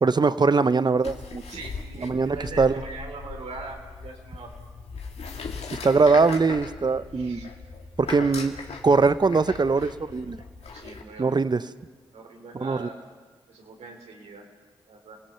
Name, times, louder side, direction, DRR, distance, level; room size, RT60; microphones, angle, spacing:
voice 1, 0.0-1.4 2.0-2.7 5.8-7.5 8.0-8.5 8.8-10.4 11.2-11.6 12.5-12.9, right 4 dB, 40° right, 14 dB, 0.8 m, -21 dB
sound 1, 1.0-11.0, left 4 dB, 70° left, 2.0 m, -39 dB
voice 2, 1.5-4.5 7.1-7.5 9.8-9.9 10.6-11.4 12.1-13.0 13.5-14.5 14.9-15.2, right 3 dB, 80° right, 2 dB, 3.1 m, -41 dB
27.5 x 17.5 x 5.8 m, 1.4 s
supercardioid pair, 40°, 11 cm